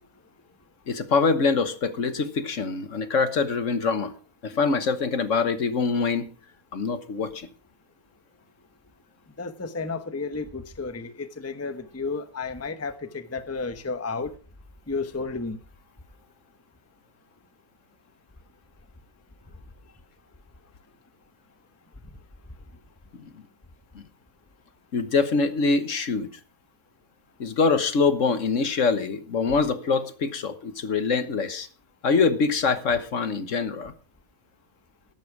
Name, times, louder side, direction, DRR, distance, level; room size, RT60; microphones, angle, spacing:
voice 1, 0.9-4.1 4.4-6.3 6.7-7.5 23.2-23.3 24.9-26.3 27.4-31.7 32.0-33.9, left 4 dB, 60° left, 1.5 m, -24 dB
voice 2, 9.4-14.3 14.9-15.6, left 4 dB, 10° left, 0.8 m, -32 dB
14.0 x 12.0 x 4.6 m
omnidirectional pair, 1.5 m